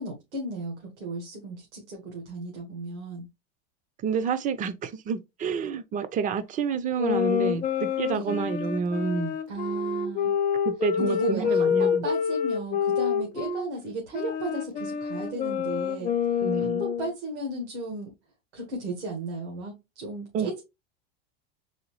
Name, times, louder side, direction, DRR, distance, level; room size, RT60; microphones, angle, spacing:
voice 1, 0.0-3.3 8.1-8.4 9.5-10.3 11.0-16.1 16.6-18.1 18.5-20.6, right 2 dB, 85° right, 1.7 m, -35 dB
voice 2, 4.0-9.3 10.6-12.0 16.4-16.8 20.3-20.5, right 6 dB, 25° right, 0.5 m, -29 dB
sound 1, 7.0-13.7 14.1-17.1, left 7 dB, 25° left, 0.6 m, -27 dB
4.1 x 3.3 x 3.1 m
supercardioid pair, 120°, 33 cm